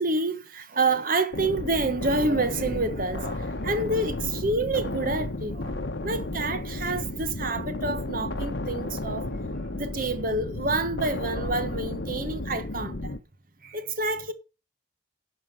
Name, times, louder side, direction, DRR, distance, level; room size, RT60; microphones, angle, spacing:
voice 1, 0.0-13.1 13.6-14.3, right 2 dB, 45° right, 1.2 m, -28 dB
sound 1, 1.3-13.2, left 2 dB, 65° left, 1.1 m, -33 dB
11.0 x 5.7 x 6.6 m
head